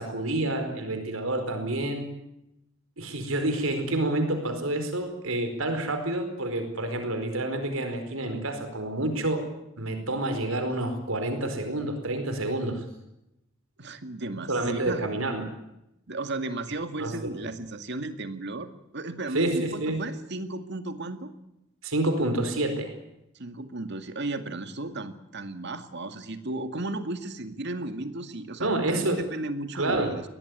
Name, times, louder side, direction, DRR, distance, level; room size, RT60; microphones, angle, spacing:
voice 1, 0.0-2.1 3.0-9.4 9.8-12.8 14.5-15.4 17.0-17.2 19.3-20.0 21.8-22.9 28.6-29.2 29.7-30.1, right 1 dB, 85° right, 7 dB, 4.7 m, -28 dB
voice 2, 13.8-15.0 16.1-21.3 23.4-30.2, right 2 dB, 55° right, 8 dB, 2.2 m, -35 dB
22.5 x 18.5 x 9.7 m, 0.87 s
head